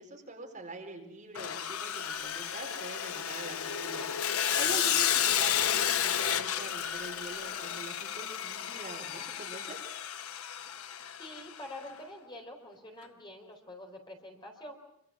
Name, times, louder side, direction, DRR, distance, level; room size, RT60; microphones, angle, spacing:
voice 1, 0.0-9.8, right 2 dB, 35° right, 1 dB, 4.4 m, -44 dB
Sawing, 1.4-11.6, left 9 dB, 90° left, 0.9 m, -32 dB
voice 2, 11.2-14.8, left 1 dB, 20° left, 2 dB, 4.2 m, -46 dB
26.0 x 25.0 x 6.0 m, 0.78 s
head